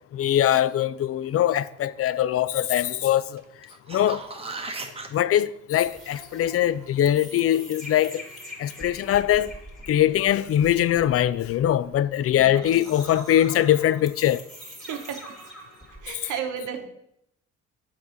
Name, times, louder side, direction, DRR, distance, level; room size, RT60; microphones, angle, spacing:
voice 1, 0.1-3.4 3.9-4.2 5.1-8.2 8.6-9.5 9.9-14.4, left 11 dB, 50° left, 0.4 m, -22 dB
sound 1, 3.6-5.1 9.9-10.0, right 3 dB, 20° right, 0.9 m, -36 dB
sound 2, 5.8-16.1, equal, ahead, 1.9 m, -44 dB
voice 2, 12.2-12.8 14.8-15.2 16.0-16.9, right 8 dB, 85° right, 1.0 m, -34 dB
5.7 x 4.7 x 6.3 m
cardioid pair, 90°, 30 cm